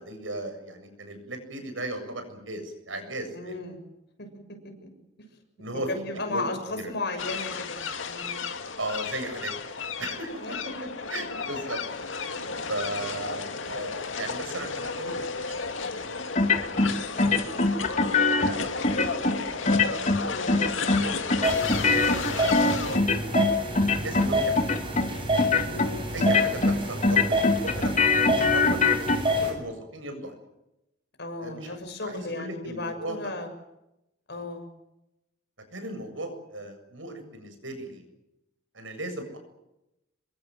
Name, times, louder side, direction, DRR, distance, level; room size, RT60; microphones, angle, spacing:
voice 1, 0.0-3.7 5.6-5.9 6.3-6.4 6.7-6.9 8.8-9.5 10.0-10.6 11.1-11.8 12.3-16.2 16.7-18.7 19.0-19.4 19.9-22.0 22.4-23.1 23.4-24.6 26.1-30.4 31.4-33.2 34.3-34.5 35.7-38.1 38.7-39.4, right 2 dB, 85° right, 7 dB, 7.5 m, -37 dB
voice 2, 3.3-3.8 4.2-4.3 4.8-4.9 5.9-8.5 10.4-10.6 20.3-20.6 25.6-26.1 31.2-33.5 34.3-34.7, left 2 dB, 60° left, 5 dB, 7.1 m, -35 dB
sound 1, 7.2-23.0, left 4 dB, 85° left, 2.2 m, -33 dB
sound 2, 16.3-16.9 17.2-18.5 18.8-19.3 19.6-20.2 20.5-21.0 21.3-23.5 23.7-24.3 24.6-25.1 25.4-25.9 26.2-26.8 27.0-29.2, left 3 dB, 40° left, 2.5 m, -22 dB
sound 3, 21.4-29.5, equal, 30° right, 7.9 m, -28 dB
27.0 x 23.0 x 7.8 m, 0.89 s
head